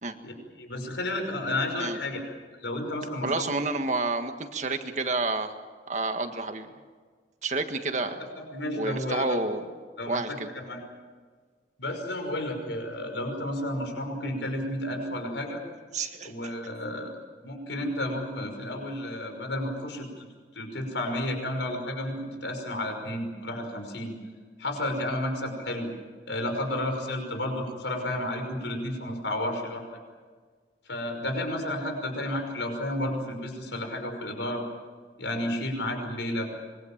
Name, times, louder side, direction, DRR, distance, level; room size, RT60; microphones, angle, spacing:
voice 1, 0.2-2.2 2.6-3.5 8.1-8.3 8.5-9.4 10.0-10.8 11.8-15.6 16.2-17.2 17.4-20.2 20.5-24.1 24.6-25.9 26.3-29.8 30.9-34.6 35.2-36.5, left 1 dB, 85° left, 4 dB, 5.7 m, -32 dB
voice 2, 3.2-5.5 5.9-6.7 7.4-8.2 8.7-9.7 10.1-10.5 15.9-16.5, right 3 dB, 40° right, 6 dB, 1.7 m, -29 dB
26.0 x 23.0 x 7.4 m, 1.5 s
head